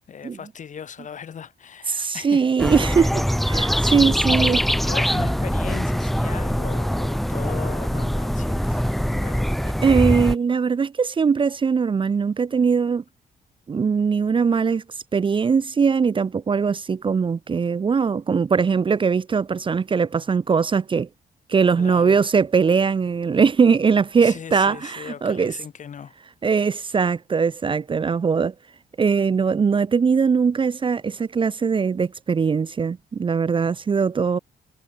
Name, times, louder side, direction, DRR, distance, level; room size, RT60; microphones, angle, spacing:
voice 1, 0.1-2.5 4.2-9.6 21.8-22.2 24.2-26.2, left 7 dB, 45° left, 3.5 m, -38 dB
voice 2, 1.9-4.6 9.8-13.0 13.7-14.8 15.1-21.1 21.5-25.5 26.4-28.5 29.0-34.4, right 5 dB, 30° right, 0.8 m, -21 dB
sound 1, 2.6-10.4, equal, ahead, 1.5 m, -23 dB
cardioid pair, 140°, 17 cm